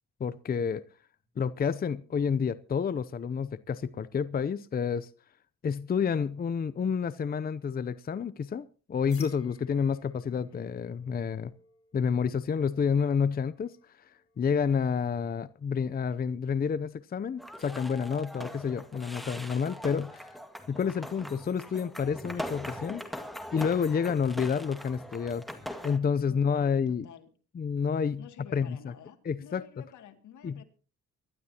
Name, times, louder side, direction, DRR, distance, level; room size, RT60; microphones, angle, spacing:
voice 1, 0.2-0.8 1.4-5.1 5.6-11.5 11.9-13.8 14.0-20.3 20.7-23.0 23.5-25.5 25.8-27.1 27.5-28.2 28.5-28.9 29.2-29.6 30.4-30.6, left 6 dB, 30° left, 0.6 m, -29 dB
sound 1, 9.1-14.6, left 5 dB, 45° left, 4.7 m, -58 dB
voice 2, 10.3-10.7 26.3-27.3 28.2-30.6, left 9 dB, 75° left, 2.4 m, -51 dB
sound 2, 17.4-26.0, equal, ahead, 1.9 m, -41 dB
24.5 x 12.0 x 2.9 m
cardioid pair, 90°, 30 cm